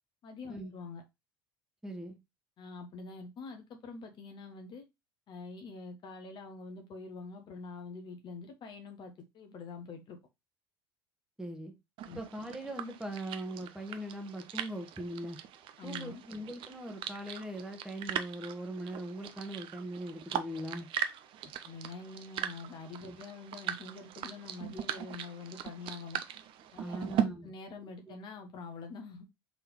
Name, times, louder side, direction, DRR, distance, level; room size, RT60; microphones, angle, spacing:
voice 1, 0.2-1.0 2.6-4.8 5.3-10.2 12.1-12.2 15.8-16.2 21.6-26.2 26.7-29.2, left 4 dB, 40° left, 0.9 m, -45 dB
voice 2, 1.8-2.2 11.4-11.7 12.1-15.4 15.8-20.9 23.0-23.2 26.8-27.5 28.1-28.2, right 1 dB, 5° right, 1.0 m, -40 dB
sound 1, 12.0-27.2, right 10 dB, 45° right, 0.5 m, -40 dB
3.9 x 3.3 x 2.9 m
figure-of-eight pair, 70°, 12 cm